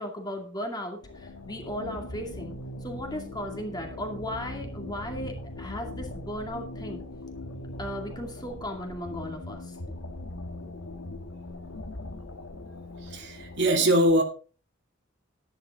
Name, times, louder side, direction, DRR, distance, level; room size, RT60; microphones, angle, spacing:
voice 1, 0.0-2.5 2.8-7.0 7.8-9.7 10.0-10.2, equal, 20° left, 2.4 m, -36 dB
sound 1, 1.0-13.7, left 1 dB, 90° left, 1.7 m, -40 dB
voice 2, 13.0-14.2, right 1 dB, 60° right, 2.5 m, -22 dB
11.5 x 10.5 x 3.8 m
head